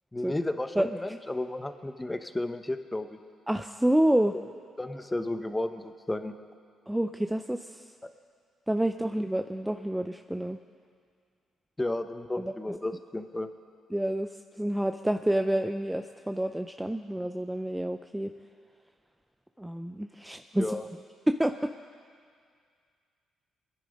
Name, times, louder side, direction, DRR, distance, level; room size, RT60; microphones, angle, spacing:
voice 1, 0.1-3.2 4.3-4.4 4.8-6.3 11.8-13.5 20.5-20.9, left 2 dB, 15° left, 9 dB, 0.9 m, -33 dB
voice 2, 3.5-4.3 6.9-7.8 8.7-10.6 12.4-12.5 13.9-14.3 14.6-18.3 19.6-20.8 21.3-21.7, right 1 dB, 5° right, 7 dB, 0.4 m, -28 dB
22.5 x 10.0 x 5.2 m, 2.1 s
cardioid pair, 90°, 0 cm